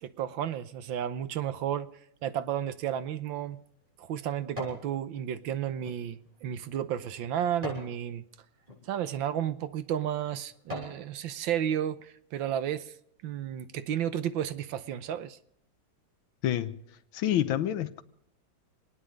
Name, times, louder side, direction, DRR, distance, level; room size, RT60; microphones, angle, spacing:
voice 1, 0.0-1.9 2.2-3.6 4.0-8.2 8.9-12.9 13.2-15.4, right 10 dB, 75° right, 1.5 m, -32 dB
sound 1, 3.0-4.9 5.3-8.0 8.6-8.8 9.5-9.7 10.2-11.0 11.5-11.6, left 2 dB, 15° right, 6.9 m, -43 dB
voice 2, 16.4-16.8 17.1-18.0, left 11 dB, 80° left, 1.7 m, -28 dB
27.5 x 9.9 x 5.2 m
omnidirectional pair, 2.2 m